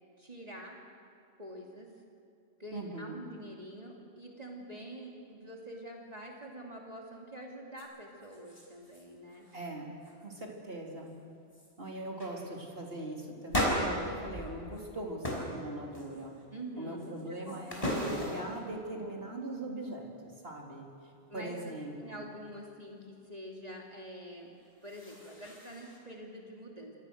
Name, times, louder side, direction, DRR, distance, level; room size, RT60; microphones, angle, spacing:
voice 1, 0.2-0.8 1.4-1.9 2.6-9.5 16.5-17.6 21.3-21.6 22.0-24.5 24.8-26.9, right 1 dB, 35° right, -1 dB, 2.8 m, -46 dB
voice 2, 2.7-3.1 9.5-9.9 10.2-11.1 11.8-16.3 16.8-20.1 20.4-20.9 21.3-22.3, right 1 dB, 60° right, -1 dB, 4.0 m, -41 dB
sound 1, 7.8-7.9 8.2-9.0 9.3-9.7 10.0-10.5 11.1-11.2 11.5-11.7 12.2-12.4 13.5-14.9 15.2-15.5 15.9-16.4 17.0-18.6 24.6-26.0, equal, 30° left, 5.5 m, -36 dB
27.5 x 25.5 x 6.5 m, 2.4 s
omnidirectional pair, 1.1 m